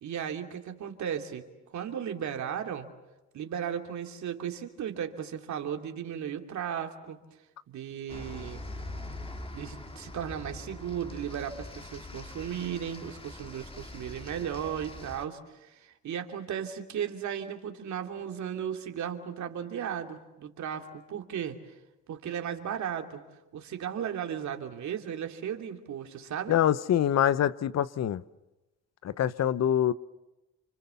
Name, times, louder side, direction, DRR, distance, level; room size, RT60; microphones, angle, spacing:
voice 1, 0.0-1.5 1.7-2.9 3.3-7.2 7.7-8.6 9.5-21.6 22.1-23.2 23.5-26.6, right 8 dB, 70° right, 2.9 m, -35 dB
sound 1, 8.1-15.3, left 2 dB, 20° left, 2.3 m, -43 dB
voice 2, 26.5-28.2 29.0-29.9, left 10 dB, 60° left, 0.9 m, -25 dB
30.0 x 25.5 x 7.1 m
cardioid pair, 90°, 30 cm